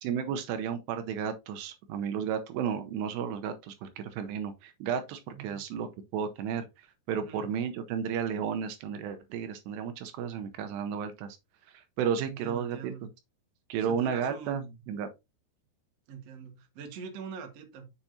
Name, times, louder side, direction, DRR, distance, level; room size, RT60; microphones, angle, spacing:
voice 1, 0.0-6.7 7.1-11.4 11.7-12.8 13.7-14.6 14.9-15.1, right 7 dB, 80° right, 2.8 m, -33 dB
voice 2, 7.2-7.5 12.2-13.1 13.8-14.8 16.1-17.9, right 7 dB, 55° right, 1.8 m, -43 dB
7.2 x 6.7 x 2.7 m
omnidirectional pair, 5.0 m